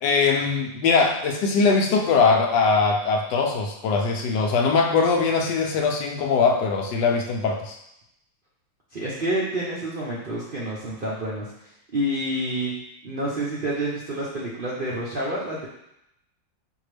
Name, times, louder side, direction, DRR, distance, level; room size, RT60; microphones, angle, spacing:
voice 1, 0.0-7.8, left 4 dB, 75° left, 2 dB, 1.2 m, -21 dB
voice 2, 8.9-11.5 11.9-15.7, right 1 dB, 60° right, -6 dB, 0.5 m, -28 dB
5.4 x 2.9 x 3.3 m, 0.82 s
omnidirectional pair, 2.0 m